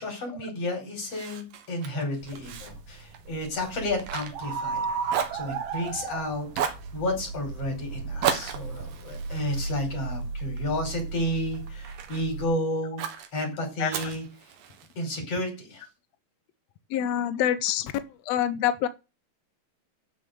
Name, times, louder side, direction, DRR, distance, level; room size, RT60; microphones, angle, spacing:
voice 1, 0.0-5.0 5.3-6.5 6.9-13.0 13.3-14.2 15.0-15.8, left 1 dB, 45° left, 6.4 m, -31 dB
Fire, 1.1-4.8 5.1-6.1 6.5-6.9 8.2-10.6 11.1-12.3 13.0-13.3 13.9-15.0, right 8 dB, 85° right, 3.4 m, -34 dB
sound 1, 2.2-12.5, right 4 dB, 70° right, 2.9 m, -35 dB
voice 2, 16.9-17.9 18.3-18.9, left 11 dB, 80° left, 1.5 m, -25 dB
14.0 x 6.5 x 6.9 m
omnidirectional pair, 4.0 m